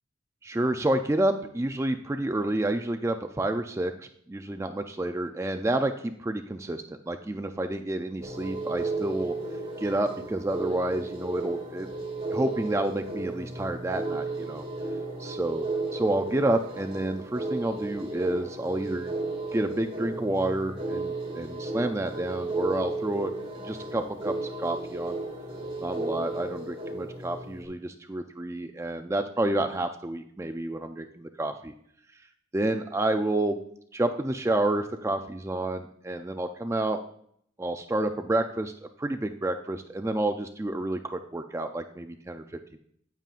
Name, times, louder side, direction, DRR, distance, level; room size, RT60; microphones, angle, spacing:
voice 1, 0.4-9.3 9.8-11.9 12.3-14.6 15.2-15.7 15.9-19.1 19.5-23.3 23.6-25.2 25.8-31.7 32.5-33.6 33.9-37.0 37.6-42.8, right 1 dB, 15° right, 7 dB, 0.4 m, -29 dB
sound 1, 8.2-27.6, right 2 dB, 30° right, 2.1 m, -34 dB
9.1 x 9.0 x 2.5 m, 0.65 s
head